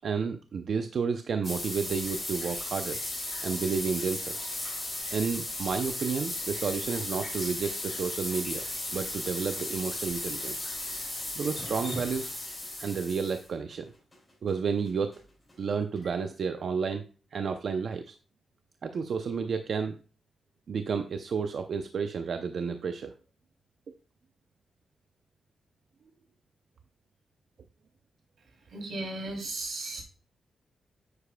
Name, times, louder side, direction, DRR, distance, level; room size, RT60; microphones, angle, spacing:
voice 1, 0.0-3.0 3.4-4.5 5.1-8.6 8.9-10.7 11.4-12.3 12.8-13.9 14.4-15.2 15.6-17.0 17.3-18.2 18.8-20.0 20.7-23.1, right 5 dB, 55° right, 7 dB, 0.5 m, -31 dB
sound 1, 1.4-13.4 13.7-13.8 14.1-14.2 14.5-14.6 14.9-15.0 15.1-15.2 15.5-15.6 16.0-16.1, left 1 dB, 15° left, 3.7 m, -36 dB
voice 2, 28.7-30.0, right 2 dB, 85° right, 0 dB, 3.0 m, -35 dB
9.8 x 8.2 x 2.2 m, 0.36 s
wide cardioid pair, 145°, 0 cm